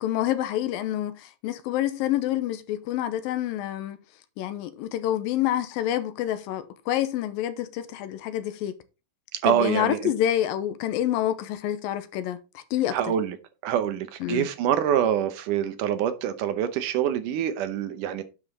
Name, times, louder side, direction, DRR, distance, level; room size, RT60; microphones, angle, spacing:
voice 1, 0.0-4.0 4.4-8.8 9.4-13.1 14.2-14.5, left 12 dB, 90° left, 2.6 m, -27 dB
voice 2, 9.4-10.1 12.9-13.4 13.6-18.2, right 9 dB, 75° right, 2.3 m, -25 dB
10.0 x 5.4 x 4.1 m
omnidirectional pair, 4.0 m